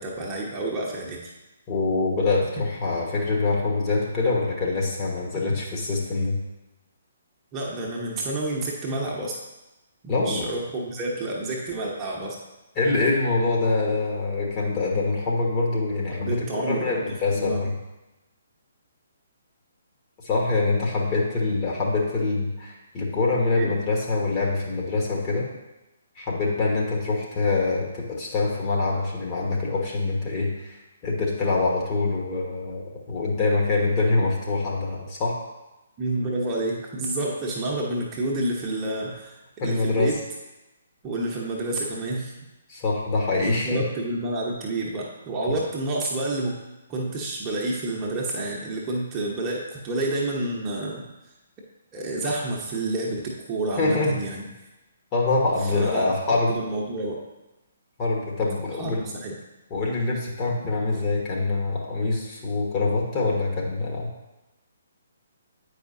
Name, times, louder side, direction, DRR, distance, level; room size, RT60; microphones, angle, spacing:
voice 1, 0.0-1.3 7.5-9.4 10.0-12.4 16.1-17.0 17.3-17.7 23.6-23.8 36.0-39.3 39.6-40.2 41.0-42.3 43.4-46.6 46.9-51.0 51.9-54.5 55.6-57.2 58.8-58.9 59.2-59.3, right 2 dB, 20° right, -3 dB, 1.1 m, -29 dB
voice 2, 1.7-6.4 10.1-10.5 12.8-17.7 20.2-25.5 26.2-30.8 31.0-35.3 39.6-40.1 42.7-43.8 53.8-54.2 55.1-56.5 58.0-59.1 59.7-64.1, left 3 dB, 25° left, -3 dB, 1.4 m, -25 dB
8.9 x 4.9 x 2.7 m, 1.0 s
figure-of-eight pair, 130°, 0 cm